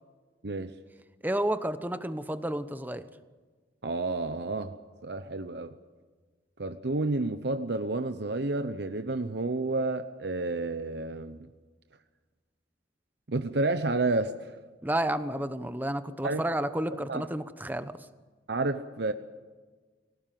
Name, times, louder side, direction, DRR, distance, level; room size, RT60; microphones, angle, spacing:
voice 1, 1.2-3.0 14.8-17.9, right 1 dB, 10° right, 11 dB, 1.0 m, -31 dB
voice 2, 3.8-4.7 5.0-5.8 6.6-11.4 13.3-14.5 16.2-16.4 16.9-17.3 18.5-19.1, right 2 dB, 65° right, 9 dB, 0.9 m, -30 dB
24.0 x 18.0 x 7.7 m, 1.4 s
head